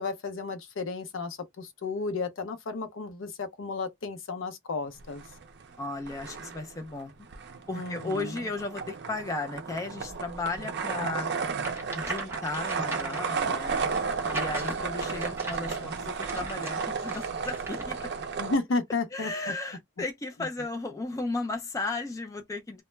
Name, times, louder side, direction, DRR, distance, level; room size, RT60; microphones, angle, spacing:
voice 1, 0.0-5.2 7.7-8.4 18.4-19.5, left 3 dB, 65° left, 0.6 m, -33 dB
sound 1, 5.0-5.8 6.0-18.6, right 5 dB, 55° right, 0.5 m, -33 dB
voice 2, 5.8-7.1 7.7-11.3 11.9-14.0 14.3-18.0 19.1-22.8, left 3 dB, 15° left, 0.3 m, -35 dB
sound 2, 11.6-18.0, right 1 dB, 10° right, 0.7 m, -40 dB
2.1 x 2.0 x 3.1 m
head